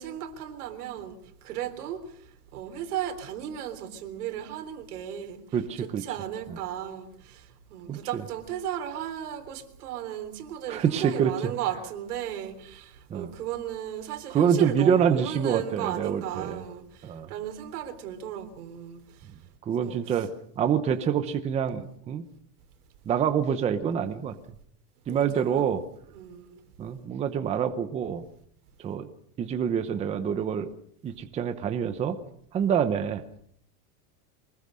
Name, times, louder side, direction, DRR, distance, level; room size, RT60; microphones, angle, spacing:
voice 1, 0.0-2.2 2.5-19.3 19.8-20.3 25.1-25.7 26.1-26.6, right 10 dB, 75° right, 3.8 m, -35 dB
voice 2, 5.5-6.0 7.9-8.0 10.7-11.3 13.1-13.3 14.3-16.6 17.0-17.3 19.7-20.3 20.6-22.2 23.1-24.3 25.1-25.8 26.8-28.2 28.8-29.1 29.4-30.7 31.0-32.2 32.5-33.2, right 8 dB, 15° right, 0.9 m, -26 dB
24.5 x 20.5 x 6.4 m
supercardioid pair, 175°, 45 cm